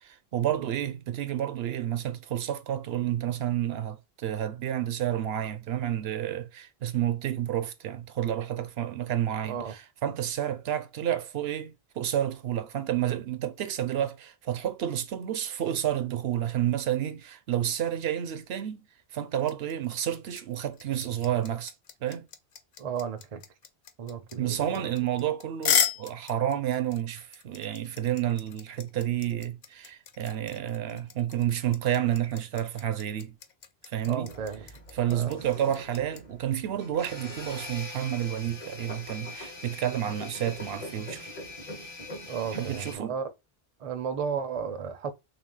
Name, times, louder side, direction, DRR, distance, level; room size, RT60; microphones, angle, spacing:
voice 1, 0.0-18.8 19.1-21.7 22.0-22.3 24.4-33.3 33.9-34.4 34.9-41.4 42.5-43.1, right 11 dB, 80° right, 0.8 m, -30 dB
voice 2, 9.4-9.7 22.8-23.4 24.0-24.9 34.1-34.6 35.1-35.4 42.3-43.3 43.8-45.1, right 6 dB, 45° right, 0.5 m, -34 dB
sound 1, 19.4-36.2, left 8 dB, 55° left, 0.6 m, -33 dB
sound 2, 34.3-43.0, left 2 dB, 35° left, 0.9 m, -42 dB
3.4 x 2.6 x 3.7 m
omnidirectional pair, 1.1 m